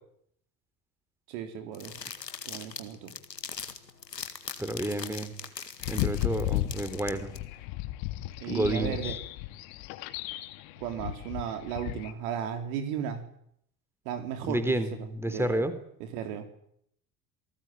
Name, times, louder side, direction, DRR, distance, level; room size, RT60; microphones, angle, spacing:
voice 1, 1.3-1.9 2.5-3.1 8.4-9.2 10.8-13.2 14.1-15.6 16.0-16.5, right 9 dB, 60° right, 7 dB, 3.9 m, -35 dB
sound 1, 1.7-7.4, left 6 dB, 85° left, 2.0 m, -41 dB
voice 2, 4.6-5.3 5.9-7.3 8.5-9.0 14.5-15.7, right 1 dB, 5° right, 11 dB, 3.7 m, -30 dB
sound 2, 5.8-12.1, left 15 dB, 55° left, 2.2 m, -34 dB
27.5 x 19.5 x 9.2 m, 0.71 s
figure-of-eight pair, 65°, 48 cm